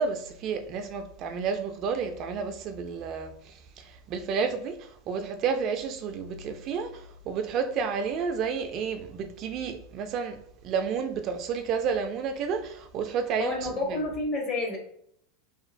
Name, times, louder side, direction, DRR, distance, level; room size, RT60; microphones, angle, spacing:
voice 1, 0.0-3.3 4.1-4.8 5.1-6.9 7.3-10.4 10.6-13.6, right 6 dB, 45° right, 0.3 m, -30 dB
voice 2, 13.4-14.8, left 2 dB, 35° left, 1.0 m, -29 dB
2.8 x 2.5 x 2.5 m
supercardioid pair, 125°, 0 cm